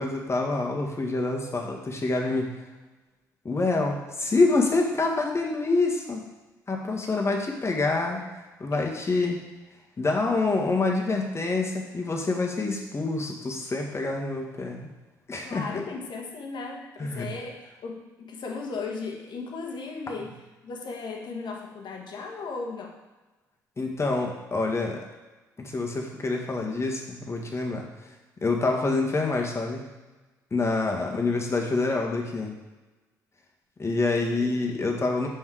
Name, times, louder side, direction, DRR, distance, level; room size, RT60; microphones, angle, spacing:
voice 1, 0.0-2.5 3.5-6.3 6.7-8.2 8.6-9.4 10.0-14.9 15.3-15.8 17.0-17.3 23.8-25.0 25.7-27.8 28.4-29.9 30.5-32.5 33.8-35.3, left 3 dB, 30° left, 1 dB, 1.7 m, -26 dB
voice 2, 15.4-20.4 20.6-23.0 31.0-31.2 34.2-35.0, left 4 dB, 50° left, 1 dB, 1.5 m, -36 dB
6.4 x 5.6 x 4.8 m, 1.2 s
hypercardioid pair, 45°, 9 cm